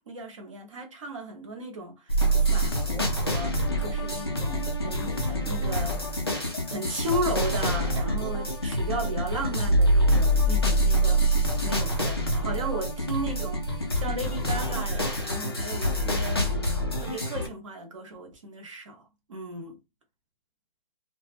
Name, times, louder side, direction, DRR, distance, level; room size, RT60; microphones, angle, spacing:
voice 1, 0.1-6.0 6.7-11.3 11.6-16.5 17.0-19.0 19.3-19.8, right 1 dB, 35° right, 0.7 m, -35 dB
sound 1, 2.1-17.5, equal, 30° left, 0.3 m, -26 dB
2.2 x 2.1 x 3.2 m
figure-of-eight pair, 155°, 29 cm